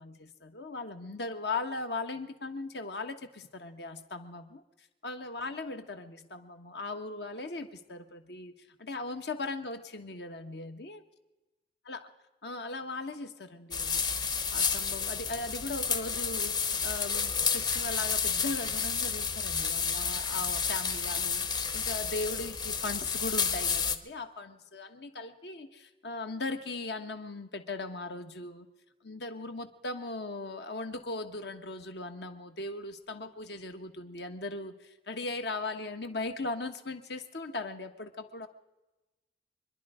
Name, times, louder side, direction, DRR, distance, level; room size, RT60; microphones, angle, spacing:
voice 1, 0.0-4.6 5.0-8.5 8.8-11.0 11.9-12.1 12.4-14.0 14.5-28.7 29.0-38.5, left 3 dB, 75° left, 7 dB, 1.3 m, -38 dB
sound 1, 13.7-24.0, left 6 dB, 25° left, 0.7 m, -31 dB
25.0 x 11.0 x 4.9 m, 1.1 s
head